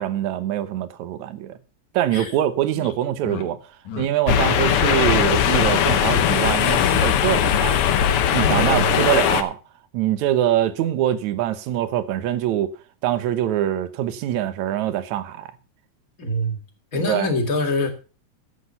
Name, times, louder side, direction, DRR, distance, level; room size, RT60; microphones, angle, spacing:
voice 1, 0.0-1.6 1.9-3.6 4.0-7.8 8.3-9.6 9.9-12.7 13.0-15.5 17.1-17.3, right 12 dB, 70° right, 2.1 m, -23 dB
sound 1, 2.2-2.3 2.7-2.9 3.2-3.4 3.8-4.1 4.5-4.8 5.1-5.4 5.7-6.3 6.7-7.0 7.2-7.6 8.0-8.7, left 9 dB, 65° left, 2.8 m, -32 dB
sound 2, 4.3-9.4, left 9 dB, 85° left, 1.2 m, -19 dB
voice 2, 8.5-9.0 16.2-16.6 16.9-17.9, left 1 dB, 30° left, 2.0 m, -24 dB
12.5 x 7.9 x 5.5 m
omnidirectional pair, 3.9 m